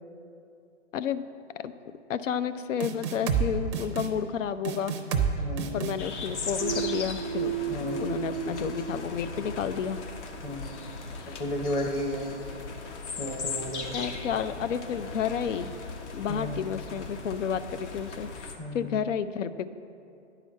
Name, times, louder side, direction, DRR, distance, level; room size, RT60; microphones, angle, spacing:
voice 1, 0.9-1.3 1.6-1.7 2.1-5.0 5.7-10.0 11.2-11.4 13.9-15.7 16.1-19.7, left 8 dB, 85° left, 13 dB, 0.5 m, -31 dB
sound 1, 2.8-3.5 3.7-4.1 4.6-5.3 5.6-5.9, right 7 dB, 25° right, 0.4 m, -28 dB
voice 2, 5.4-5.9 7.7-8.3 10.4-10.8 11.3-12.3 13.2-14.0 16.3-16.7 18.6-18.9, left 1 dB, 15° left, 1 dB, 0.7 m, -34 dB
sound 2, 6.0-18.6, left 4 dB, 65° left, 1.2 m, -38 dB
sound 3, 6.6-10.3, right 9 dB, 75° right, 0.5 m, -34 dB
9.6 x 5.0 x 6.4 m, 2.6 s
hypercardioid pair, 140°, 37 cm